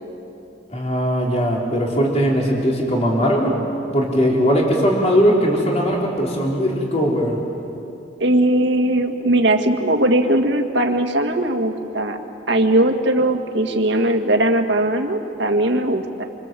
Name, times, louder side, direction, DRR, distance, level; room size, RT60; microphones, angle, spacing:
voice 1, 0.7-3.6 3.9-7.4, equal, 35° left, -2 dB, 3.9 m, -19 dB
voice 2, 8.2-12.2 12.5-16.2, right 1 dB, 70° right, 4 dB, 2.0 m, -19 dB
28.0 x 25.0 x 7.7 m, 2.8 s
head